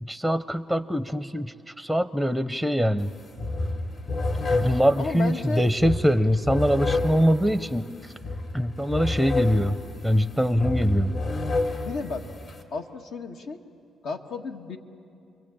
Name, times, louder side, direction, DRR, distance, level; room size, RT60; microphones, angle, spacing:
voice 1, 0.0-3.1 4.5-7.9 8.5-9.8 10.0-11.1, equal, 5° left, 11 dB, 0.7 m, -23 dB
sound 1, 3.0-3.1 3.4-12.6, left 2 dB, 55° left, 3.0 m, -30 dB
voice 2, 4.9-5.6 11.8-12.2 12.7-13.6 14.0-14.8, left 4 dB, 75° left, 3 dB, 1.7 m, -33 dB
29.5 x 23.0 x 8.7 m, 2.5 s
cardioid pair, 90°, 0 cm